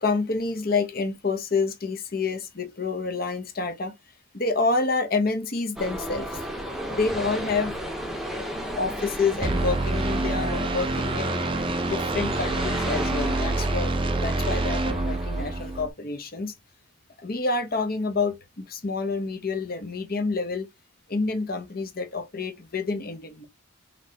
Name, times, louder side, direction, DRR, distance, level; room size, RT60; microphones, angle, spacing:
voice 1, 0.0-3.9 4.3-6.5 6.9-7.8 8.6-11.5 11.8-13.9 14.2-16.5 17.2-20.7 21.1-23.4, left 3 dB, 45° left, 0.9 m, -28 dB
sound 1, 5.8-15.8, equal, ahead, 0.8 m, -34 dB
sound 2, 9.4-15.9, right 2 dB, 25° right, 0.5 m, -27 dB
5.7 x 3.2 x 2.8 m
head